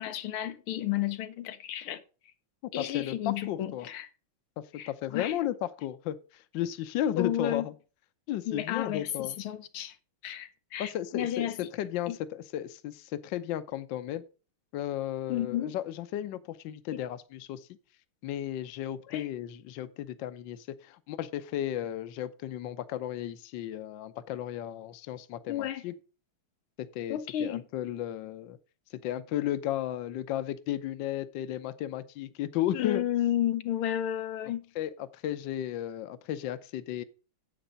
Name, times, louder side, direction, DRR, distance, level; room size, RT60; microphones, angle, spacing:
voice 1, 0.0-2.0 2.7-4.1 4.7-5.4 7.1-7.7 8.5-10.0 10.2-11.6 12.1-12.2 15.3-15.7 16.9-17.0 19.1-19.3 25.5-25.8 27.1-27.6 32.7-34.7, left 11 dB, 85° left, 1.8 m, -32 dB
voice 2, 2.8-3.1 3.5-3.9 4.6-7.7 8.3-9.4 10.8-14.2 14.7-17.7 18.2-25.9 26.8-28.6 28.9-33.0 34.7-37.0, left 12 dB, 70° left, 1.4 m, -34 dB
10.0 x 8.1 x 3.9 m
omnidirectional pair, 2.3 m